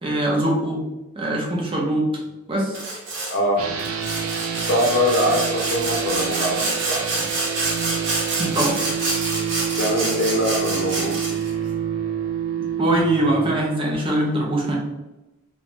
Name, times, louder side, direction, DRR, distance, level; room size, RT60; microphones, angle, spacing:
voice 1, 0.0-0.8 1.2-2.1 2.5-2.8 8.4-8.8 12.8-14.8, right 1 dB, 25° right, -1 dB, 0.5 m, -22 dB
Sawing, 2.7-3.4 3.8-11.5, right 2 dB, 60° right, 0.9 m, -27 dB
voice 2, 3.3-3.6 4.7-7.0 9.8-11.1, left 1 dB, 60° left, -1 dB, 0.7 m, -22 dB
sound 1, 3.6-13.5, right 8 dB, 85° right, 0.4 m, -27 dB
2.5 x 2.2 x 2.9 m, 1.0 s
head